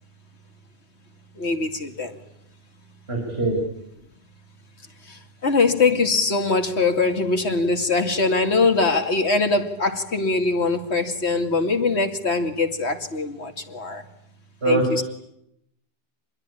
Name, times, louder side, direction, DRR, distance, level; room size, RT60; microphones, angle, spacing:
voice 1, 1.4-2.2 5.1-14.0 14.6-15.0, left 3 dB, 65° left, 6 dB, 2.8 m, -22 dB
voice 2, 3.1-3.6 14.6-15.0, right 1 dB, 60° right, 1 dB, 6.0 m, -22 dB
27.5 x 21.5 x 9.9 m, 0.79 s
omnidirectional pair, 1.2 m